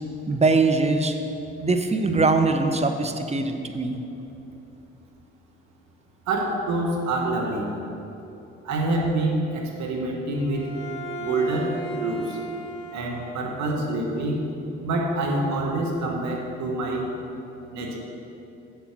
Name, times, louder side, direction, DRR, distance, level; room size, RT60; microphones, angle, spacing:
voice 1, 0.3-1.2 1.6-4.0, right 3 dB, 20° right, 7 dB, 0.9 m, -22 dB
voice 2, 6.3-7.7 8.6-10.7 11.2-12.4 12.9-14.4 14.8-17.1 17.7-18.0, right 2 dB, 70° right, 0 dB, 1.5 m, -26 dB
Bowed string instrument, 10.3-13.8, right 1 dB, 45° left, 2.0 m, -37 dB
7.4 x 7.0 x 6.1 m, 2.8 s
hypercardioid pair, 55°, 29 cm